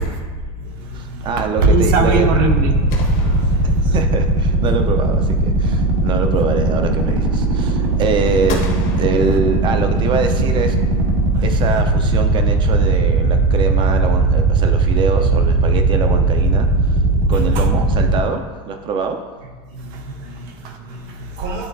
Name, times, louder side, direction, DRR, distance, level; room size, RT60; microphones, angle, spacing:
voice 1, 0.0-3.9 5.9-6.0 9.1-9.2 11.2-11.5 17.2-17.7 19.7-21.7, right 3 dB, 50° right, 4 dB, 0.8 m, -24 dB
voice 2, 0.9-2.3 3.6-8.6 9.0-10.8 11.4-16.7 17.3-18.4 18.7-19.2, right 5 dB, 25° right, 6 dB, 0.5 m, -23 dB
sound 1, 1.6-18.2, right 2 dB, 70° right, 1.7 m, -17 dB
sound 2, 2.9-4.4 8.5-10.1, left 3 dB, 50° left, 1.2 m, -35 dB
10.5 x 3.8 x 2.6 m, 1.4 s
supercardioid pair, 160°, 18 cm